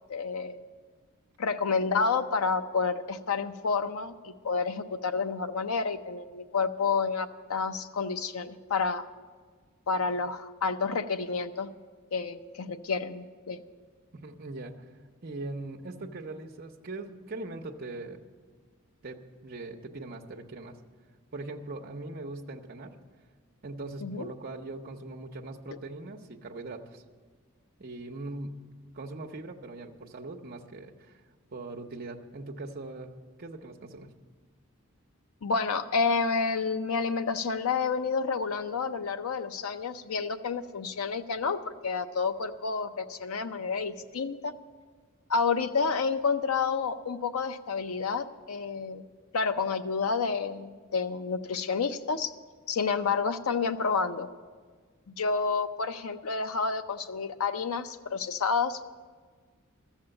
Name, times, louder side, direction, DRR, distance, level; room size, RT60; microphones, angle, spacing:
voice 1, 0.1-0.6 1.4-9.0 9.9-11.7 12.1-13.6 24.0-24.3 35.4-44.5 45.3-49.0 49.3-52.3 52.7-54.3 55.1-58.8, left 5 dB, 75° left, 9 dB, 0.6 m, -29 dB
voice 2, 14.1-14.8 15.2-18.2 19.0-20.8 21.3-22.9 23.6-27.0 27.8-28.6 28.9-31.1 31.5-33.1 33.4-34.1, right 2 dB, 45° right, 1 dB, 0.8 m, -40 dB
13.5 x 7.3 x 8.7 m, 1.5 s
head